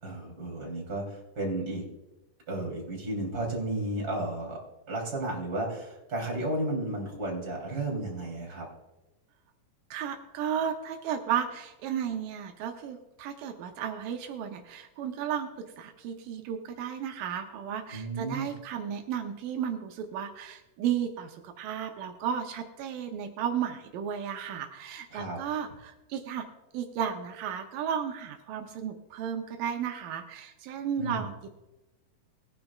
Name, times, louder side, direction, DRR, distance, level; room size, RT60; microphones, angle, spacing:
voice 1, 0.0-1.9 2.5-4.6 4.9-8.7 17.9-18.5 25.1-25.4 31.0-31.3, right 2 dB, 25° right, -2 dB, 3.6 m, -33 dB
voice 2, 9.9-26.5 26.7-31.5, right 8 dB, 85° right, 4 dB, 2.5 m, -34 dB
20.0 x 10.0 x 2.4 m, 1.0 s
omnidirectional pair, 3.8 m